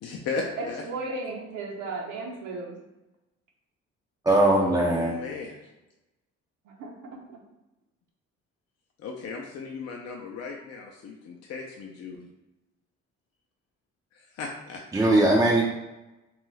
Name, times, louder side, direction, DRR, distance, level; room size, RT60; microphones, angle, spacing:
voice 1, 0.0-0.8 4.6-5.6 9.0-12.3 14.1-14.8, left 4 dB, 55° left, 0 dB, 0.4 m, -36 dB
voice 2, 0.6-2.8 6.6-7.4, right 3 dB, 80° right, -1 dB, 0.8 m, -35 dB
voice 3, 4.3-5.1 14.9-15.6, right 1 dB, 10° right, -3 dB, 0.3 m, -20 dB
2.6 x 2.4 x 3.1 m, 1.0 s
cardioid pair, 90°, 30 cm